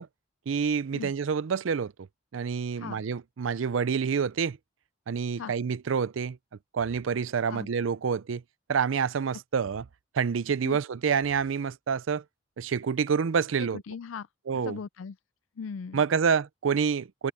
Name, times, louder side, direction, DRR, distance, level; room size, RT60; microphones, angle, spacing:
voice 1, 0.5-2.1 2.3-4.6 5.1-6.4 6.7-8.4 8.7-9.8 10.1-12.2 12.6-13.8 14.5-14.8 15.9-17.3, right 6 dB, 85° right, 0.5 m, -27 dB
voice 2, 13.6-14.3 14.5-15.2 15.6-16.0, left 6 dB, 85° left, 0.4 m, -39 dB
head